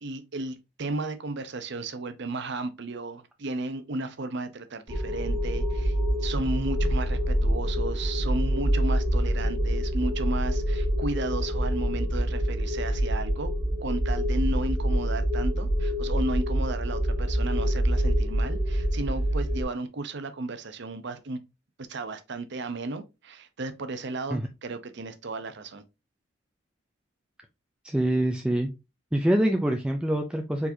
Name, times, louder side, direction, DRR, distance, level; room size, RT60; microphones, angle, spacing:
voice 1, 0.0-5.9 6.2-13.5 13.8-21.4 21.9-25.8, right 2 dB, 60° right, 0.7 m, -34 dB
sound 1, 4.9-19.6, equal, 25° right, 1.3 m, -26 dB
voice 2, 27.8-28.7 29.1-30.7, right 1 dB, 5° right, 0.4 m, -25 dB
4.7 x 4.0 x 2.6 m
head